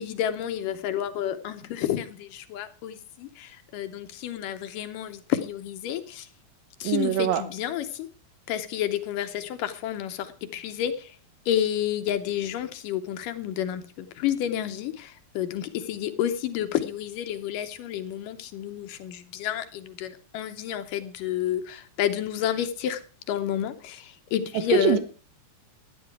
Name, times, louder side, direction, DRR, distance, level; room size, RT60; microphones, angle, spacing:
voice 1, 0.0-6.3 6.8-8.1 8.5-11.2 11.5-25.0, left 10 dB, 75° left, 2.3 m, -30 dB
voice 2, 6.8-7.4 24.7-25.0, right 10 dB, 75° right, 2.7 m, -23 dB
12.5 x 10.0 x 4.7 m
omnidirectional pair, 4.2 m